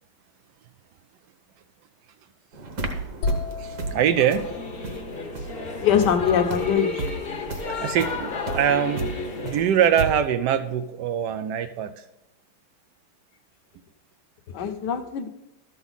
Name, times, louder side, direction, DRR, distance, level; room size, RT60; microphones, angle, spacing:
sound 1, 2.5-10.0, right 3 dB, 55° right, 1.6 m, -35 dB
sound 2, 3.2-7.0, left 2 dB, 80° left, 1.7 m, -34 dB
voice 1, 3.6-4.5 5.4-5.5 7.8-12.0, right 9 dB, 80° right, 9 dB, 0.9 m, -23 dB
Singing / Musical instrument, 4.1-9.6, left 4 dB, 40° left, 0.8 m, -33 dB
voice 2, 5.8-7.1 14.5-15.3, left 8 dB, 60° left, 7 dB, 1.3 m, -22 dB
13.0 x 7.0 x 4.0 m, 0.90 s
omnidirectional pair, 2.4 m